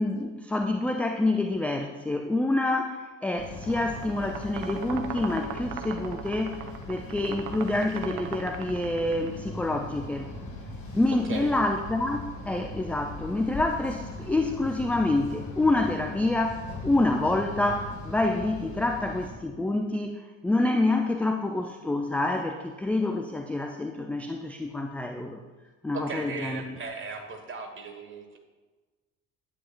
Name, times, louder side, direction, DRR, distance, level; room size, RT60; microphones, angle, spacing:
voice 1, 0.0-6.6 6.9-10.3 10.9-25.4 25.8-26.6, left 2 dB, 5° left, 4 dB, 0.4 m, -27 dB
sound 1, 3.4-19.3, left 2 dB, 45° left, 2.3 m, -40 dB
sound 2, 3.6-9.3, right 8 dB, 55° right, 0.7 m, -39 dB
voice 2, 25.9-28.4, right 4 dB, 30° right, 4 dB, 1.5 m, -37 dB
9.9 x 8.8 x 2.4 m, 1.3 s
figure-of-eight pair, 55°, 40 cm